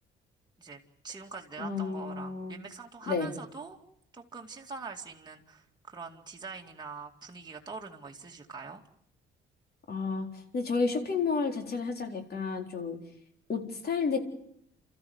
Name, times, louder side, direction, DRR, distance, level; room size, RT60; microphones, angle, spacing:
voice 1, 0.6-3.8 4.1-8.8, right 4 dB, 20° right, 0 dB, 2.4 m, -44 dB
voice 2, 1.6-2.6 3.1-3.3 9.9-10.3 10.5-13.0 13.5-14.2, left 4 dB, 50° left, 5 dB, 4.2 m, -31 dB
29.5 x 14.0 x 9.6 m, 0.75 s
cardioid pair, 90°, 20 cm